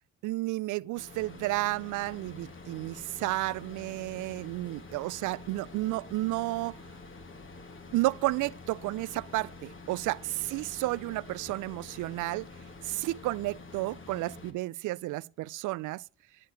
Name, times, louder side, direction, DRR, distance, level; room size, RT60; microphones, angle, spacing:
voice 1, 0.2-6.8 7.9-12.5 12.8-16.0, right 19 dB, 85° right, 0.4 m, -32 dB
sound 1, 1.0-14.5, left 3 dB, 40° left, 2.6 m, -48 dB
11.5 x 6.8 x 6.3 m
cardioid pair, 90°, 30 cm